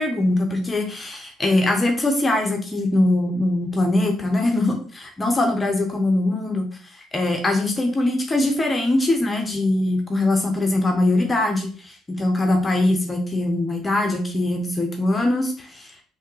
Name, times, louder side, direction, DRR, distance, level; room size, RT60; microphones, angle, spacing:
voice 1, 0.0-6.7 7.0-16.0, left 2 dB, 25° left, 3 dB, 0.7 m, -22 dB
3.5 x 2.7 x 3.0 m, 0.42 s
hypercardioid pair, 55°, 0 cm